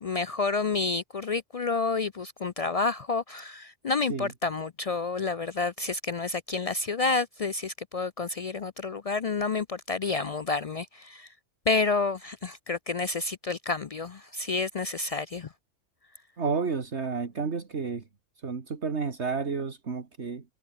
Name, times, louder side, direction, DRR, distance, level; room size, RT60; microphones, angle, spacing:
voice 1, 0.0-11.3 11.7-15.5, left 4 dB, 60° left, 0.3 m, -29 dB
voice 2, 16.4-18.0 18.4-20.4, right 5 dB, 65° right, 2.2 m, -31 dB
omnidirectional pair, 1.3 m